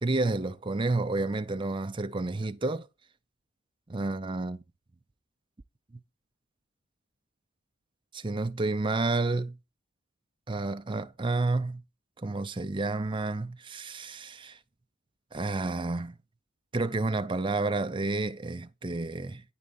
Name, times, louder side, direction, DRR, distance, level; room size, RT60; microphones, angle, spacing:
voice 1, 0.0-2.9 3.9-4.6 8.1-9.6 10.5-11.8 12.2-14.6 15.3-16.2 16.7-19.4, right 3 dB, 25° right, 0.5 m, -30 dB
10.0 x 3.6 x 7.0 m
head